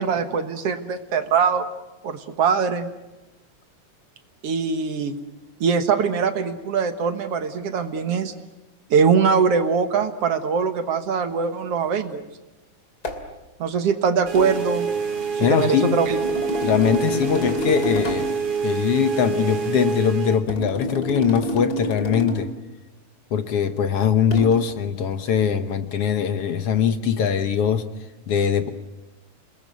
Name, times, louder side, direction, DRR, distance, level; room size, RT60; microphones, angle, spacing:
voice 1, 0.0-1.7 2.0-2.9 4.4-5.2 5.6-8.3 8.9-12.2 13.6-14.9 15.4-16.2, right 6 dB, 60° right, 9 dB, 2.2 m, -22 dB
sound 1, 13.0-13.3 14.4-14.6 16.1-18.4 20.5-22.6 24.3-24.6, left 1 dB, 35° left, 2.8 m, -28 dB
sound 2, 14.3-20.4, right 6 dB, 85° right, 4.0 m, -26 dB
voice 2, 15.4-16.0 16.6-18.3 18.6-22.5 23.3-27.9 28.3-28.7, left 8 dB, 60° left, 10 dB, 1.8 m, -21 dB
28.5 x 21.0 x 9.3 m, 1.1 s
omnidirectional pair, 3.3 m